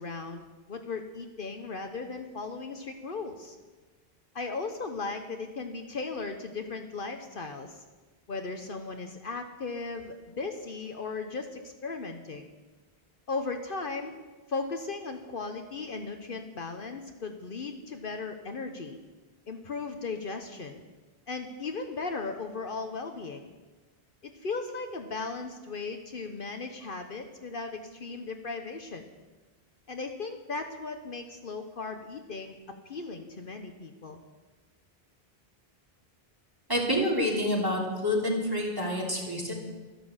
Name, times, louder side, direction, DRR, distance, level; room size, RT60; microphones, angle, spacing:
voice 1, 0.0-3.6 4.3-7.8 8.3-12.5 13.3-14.1 14.5-19.0 19.5-20.8 21.3-23.5 24.2-29.1 29.9-34.2, left 4 dB, 55° left, 5 dB, 1.1 m, -37 dB
voice 2, 36.7-39.5, left 1 dB, 20° right, -3 dB, 3.2 m, -28 dB
13.0 x 11.5 x 7.3 m, 1.2 s
omnidirectional pair, 1.1 m